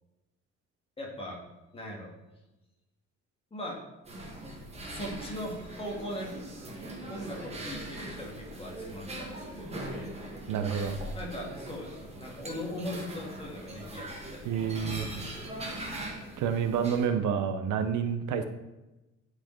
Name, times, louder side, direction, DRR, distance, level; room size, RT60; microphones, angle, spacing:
voice 1, 1.0-1.4 1.7-2.1 3.5-3.8 4.9-6.3 7.1-10.1 11.1-15.9, left 1 dB, 20° left, -2 dB, 2.0 m, -40 dB
sound 1, 4.0-17.1, right 1 dB, 20° right, 1.6 m, -41 dB
voice 2, 10.5-11.0 14.4-15.1 16.4-18.4, right 7 dB, 90° right, 8 dB, 0.9 m, -29 dB
11.0 x 4.9 x 4.6 m, 1.0 s
cardioid pair, 165°, 30 cm